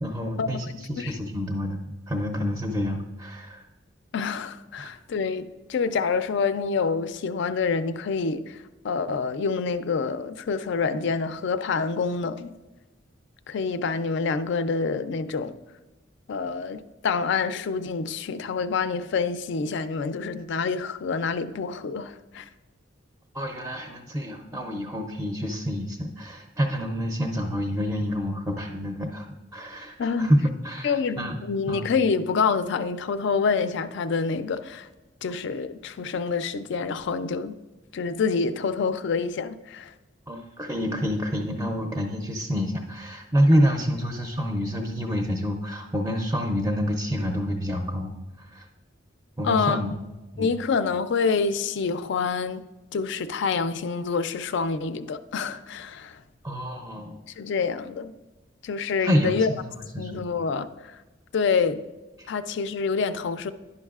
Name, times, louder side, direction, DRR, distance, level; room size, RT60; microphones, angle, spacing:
voice 1, 0.0-3.7 4.8-4.9 23.3-29.3 29.5-31.4 31.7-31.9 35.3-35.4 40.3-48.1 48.4-48.7 49.4-49.9 50.3-50.5 56.4-57.2 59.0-59.6 59.9-60.3 62.2-62.3, equal, 10° right, 0.5 m, -27 dB
voice 2, 4.1-8.6 8.8-12.5 13.5-15.5 16.3-22.5 30.0-30.3 30.8-34.9 35.2-37.6 37.9-39.9 49.4-49.8 50.4-52.6 52.9-56.2 57.4-58.1 58.6-59.5 60.0-61.0 61.3-61.8 62.3-63.5, left 5 dB, 65° left, 0.4 m, -27 dB
10.5 x 5.4 x 2.3 m
head